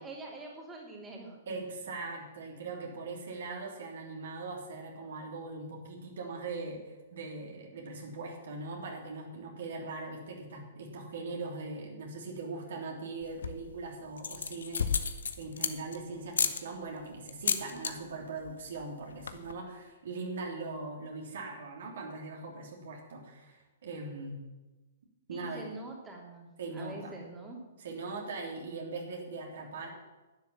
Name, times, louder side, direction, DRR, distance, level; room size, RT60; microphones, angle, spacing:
voice 1, 0.0-1.4 25.3-27.6, right 2 dB, 15° right, -1 dB, 3.1 m, -45 dB
voice 2, 1.5-14.9 15.4-24.4 25.3-25.7 26.6-27.2 27.8-29.9, right 3 dB, 55° right, 0 dB, 3.2 m, -40 dB
sound 1, 13.2-13.7 14.2-16.0 16.3-16.6 17.3-17.9 18.2-18.5 18.8-18.9 19.1-19.5, left 6 dB, 65° left, 1.1 m, -31 dB
11.5 x 10.5 x 7.4 m, 1.1 s
figure-of-eight pair, 115°, 0 cm